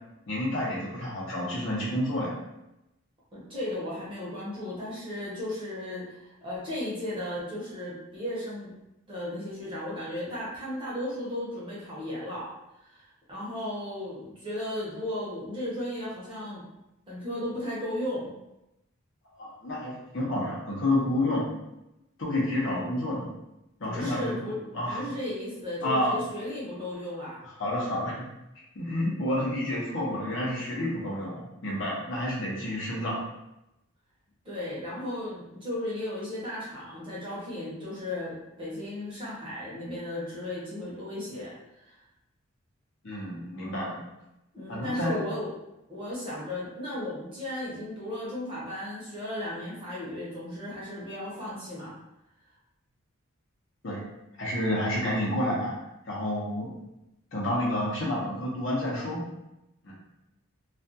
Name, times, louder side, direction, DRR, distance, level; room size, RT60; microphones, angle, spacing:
voice 1, 0.3-2.4 19.4-21.4 22.2-23.3 23.8-24.3 24.7-25.0 25.8-26.2 27.6-28.3 28.7-33.2 43.0-44.0 44.7-45.2 53.8-54.0 54.4-55.7 56.1-56.7 57.3-59.2 59.8-59.9, left 1 dB, 55° left, -4 dB, 0.7 m, -29 dB
voice 2, 3.3-8.7 9.1-12.5 12.8-16.6 17.1-18.3 23.8-24.6 24.9-27.4 34.4-42.0 44.5-45.5 45.9-51.9, left 1 dB, 25° right, -7 dB, 0.7 m, -35 dB
2.3 x 2.3 x 2.6 m, 0.91 s
head